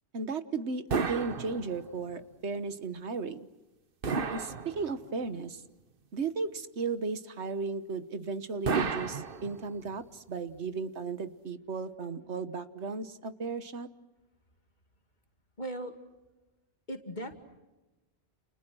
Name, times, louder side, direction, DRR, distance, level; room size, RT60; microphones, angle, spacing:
voice 1, 0.1-3.5 4.3-5.6 6.1-13.9, right 4 dB, 80° right, 12 dB, 1.6 m, -35 dB
sound 1, 0.9-2.1 4.0-5.3 8.7-9.9, right 5 dB, 55° right, 1.3 m, -33 dB
voice 2, 15.6-16.0 16.9-17.3, right 1 dB, 45° left, 6 dB, 2.6 m, -37 dB
30.0 x 29.5 x 6.3 m, 1.1 s
omnidirectional pair, 1.1 m